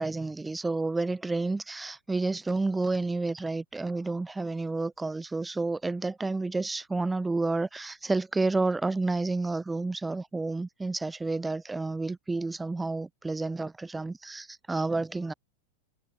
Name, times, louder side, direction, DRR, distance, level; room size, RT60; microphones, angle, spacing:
voice 1, 0.0-15.3, right 3 dB, 10° right, 4.5 m, -30 dB
figure-of-eight pair, 90°, 0 cm